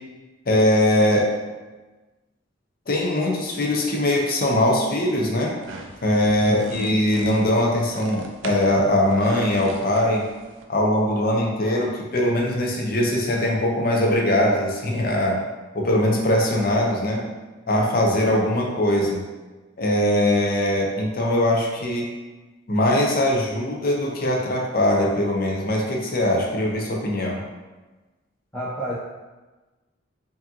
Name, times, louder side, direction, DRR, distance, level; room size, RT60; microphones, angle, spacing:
voice 1, 0.5-1.3 2.9-5.5 6.0-10.2 10.7-15.4 15.7-17.2 17.7-19.2 19.8-22.1 22.7-27.4, left 1 dB, 50° left, -1 dB, 0.7 m, -21 dB
sound 1, 5.6-10.6, right 3 dB, 80° right, 0.4 m, -39 dB
voice 2, 6.4-6.9 28.5-28.9, equal, 10° left, -11 dB, 0.7 m, -31 dB
4.7 x 2.7 x 2.8 m, 1.2 s
head